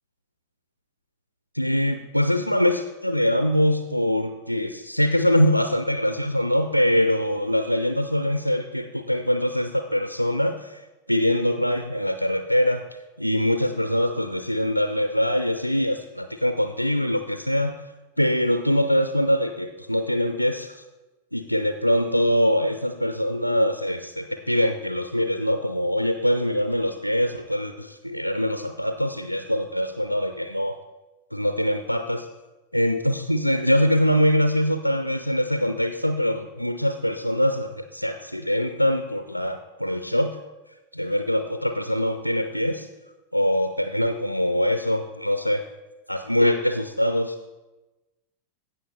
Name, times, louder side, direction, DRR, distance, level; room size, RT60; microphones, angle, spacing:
voice 1, 1.5-10.8 11.1-12.8 13.2-17.7 18.2-20.8 21.3-30.8 31.3-32.3 32.7-40.4 40.9-42.9 43.3-45.6 46.1-47.5, equal, 90° left, 8 dB, 0.4 m, -23 dB
15.5 x 5.6 x 4.0 m, 1.1 s
figure-of-eight pair, 90°, 0 cm